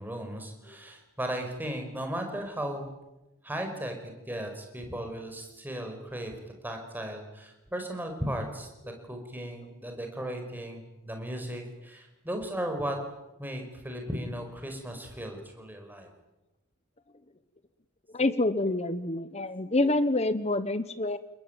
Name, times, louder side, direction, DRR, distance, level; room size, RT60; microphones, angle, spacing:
voice 1, 0.0-2.9 3.4-3.9 4.3-6.3 6.6-8.7 9.0-13.0 13.4-16.1, right 1 dB, 10° right, 4 dB, 5.4 m, -36 dB
voice 2, 18.1-21.2, left 2 dB, 30° left, 13 dB, 1.1 m, -27 dB
29.0 x 21.0 x 9.1 m, 0.96 s
head